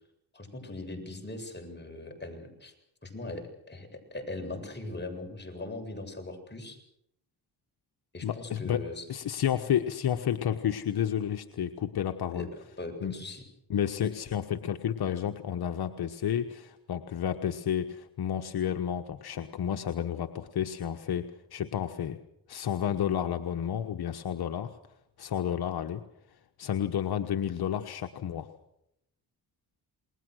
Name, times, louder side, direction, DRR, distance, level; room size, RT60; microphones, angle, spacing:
voice 1, 0.3-2.7 3.0-6.8 8.1-9.1 12.3-12.5 12.8-13.4, left 2 dB, 25° left, 3 dB, 7.6 m, -40 dB
voice 2, 8.2-8.8 9.1-12.5 13.0-13.1 13.7-22.2 22.5-24.8 25.2-26.0 26.6-28.5, left 9 dB, 65° left, 6 dB, 1.3 m, -31 dB
28.5 x 21.5 x 6.5 m, 0.78 s
cardioid pair, 65°, 40 cm